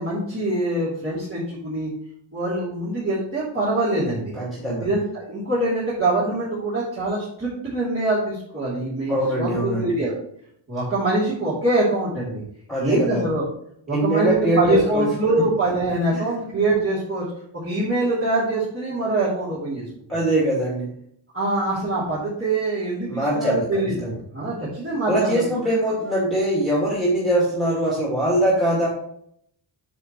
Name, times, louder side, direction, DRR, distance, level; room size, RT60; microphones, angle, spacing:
voice 1, 0.0-1.9 2.3-4.3 4.8-10.1 10.7-12.3 12.8-13.4 13.9-17.2 17.6-19.8 21.3-25.6, right 2 dB, 30° right, -10 dB, 3.1 m, -24 dB
voice 2, 4.3-4.9 9.1-9.9 12.7-13.3 13.9-15.1 15.4-15.5 16.1-16.3 20.1-20.9 23.1-24.1 25.0-28.9, right 1 dB, ahead, -5 dB, 2.3 m, -22 dB
9.5 x 6.6 x 3.2 m, 0.68 s
wide cardioid pair, 160°, 44 cm